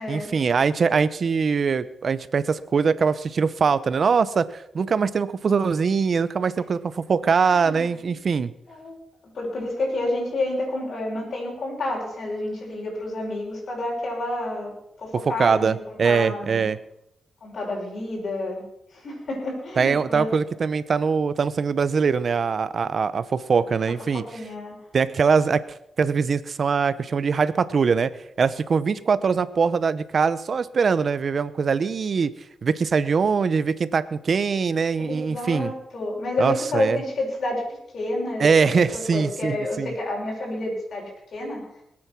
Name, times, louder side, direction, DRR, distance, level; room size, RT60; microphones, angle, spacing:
voice 1, 0.1-8.5 15.2-16.8 19.8-24.2 24.9-25.6 26.0-28.1 28.4-32.3 32.6-35.7 36.4-37.0 38.4-39.9, right 5 dB, 55° right, 15 dB, 0.8 m, -22 dB
voice 2, 7.4-7.9 8.7-8.9 9.3-14.7 15.0-15.8 16.0-16.6 17.4-18.6 18.9-20.3 24.1-24.8 35.0-37.6 37.9-41.6, left 2 dB, 60° left, -3 dB, 6.0 m, -29 dB
20.5 x 8.8 x 6.2 m, 0.77 s
cardioid pair, 90°, 0 cm